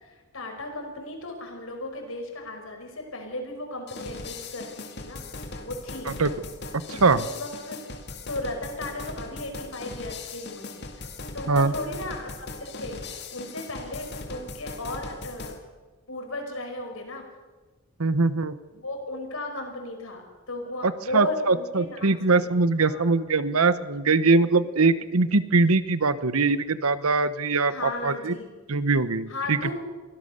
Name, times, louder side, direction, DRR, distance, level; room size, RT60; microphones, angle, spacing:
voice 1, 0.0-5.2 5.6-6.1 7.2-7.8 8.3-10.9 11.3-12.3 12.6-13.0 13.3-15.5 16.1-17.2 18.7-20.2 20.5-22.5 22.8-23.1 27.7-28.5 29.3-29.7, left 2 dB, 75° left, 3 dB, 5.4 m, -35 dB
sound 1, 3.9-15.6, left 3 dB, 50° left, 2.3 m, -39 dB
voice 2, 18.0-18.6 20.8-28.4 28.7-29.7, right 3 dB, 85° right, 14 dB, 1.0 m, -22 dB
24.0 x 16.5 x 6.7 m, 1.3 s
head